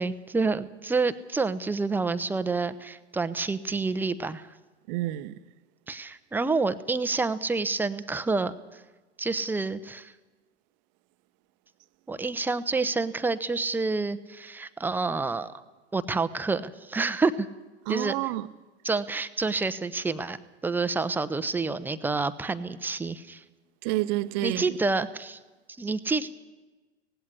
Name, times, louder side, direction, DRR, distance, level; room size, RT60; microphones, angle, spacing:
voice 1, 0.0-4.5 5.9-8.8 9.2-10.1 12.1-15.5 15.9-17.5 17.9-18.2 18.8-20.4 20.6-23.4 24.4-25.4 25.8-26.3, right 3 dB, 5° right, 0.8 m, -28 dB
voice 2, 4.9-5.4 17.9-18.5 23.8-24.8, right 16 dB, 40° right, 0.9 m, -29 dB
18.0 x 16.0 x 9.7 m
figure-of-eight pair, 100°, 34 cm